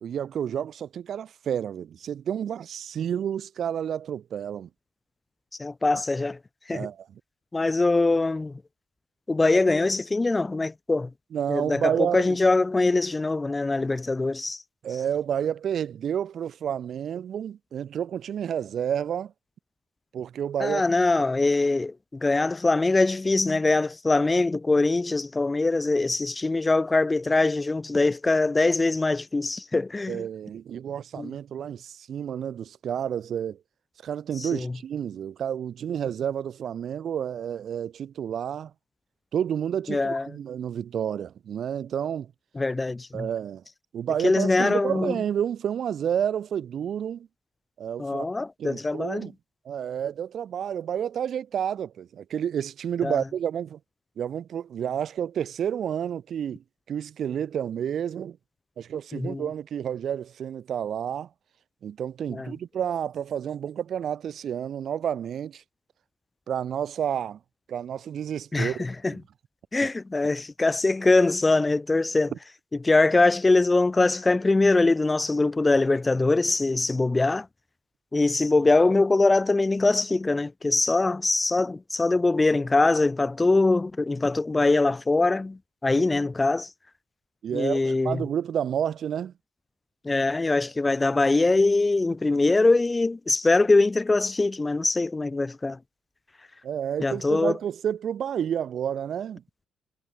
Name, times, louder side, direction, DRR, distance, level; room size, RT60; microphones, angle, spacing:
voice 1, 0.0-4.7 6.7-7.2 11.3-12.4 14.8-19.3 20.1-20.8 30.1-33.6 34.0-38.7 39.3-42.3 43.1-43.6 43.9-47.3 47.8-48.3 48.6-49.3 49.6-53.8 54.2-58.4 58.8-61.3 61.8-65.6 66.5-67.4 67.7-69.2 69.8-69.9 87.4-89.3 96.6-99.4, right 9 dB, 60° right, 1.1 m, -30 dB
voice 2, 5.6-6.4 6.7-6.9 7.5-8.5 9.3-11.1 11.5-14.6 20.6-30.2 31.2-31.3 34.4-34.7 39.9-40.3 42.6-43.3 44.2-45.1 48.0-49.3 53.0-53.2 59.1-59.4 62.3-62.5 68.5-69.1 69.7-72.3 72.8-77.5 78.1-86.7 87.5-88.2 90.0-95.8 97.0-97.5, left 3 dB, 20° left, 0.4 m, -23 dB
cardioid pair, 90°, 0 cm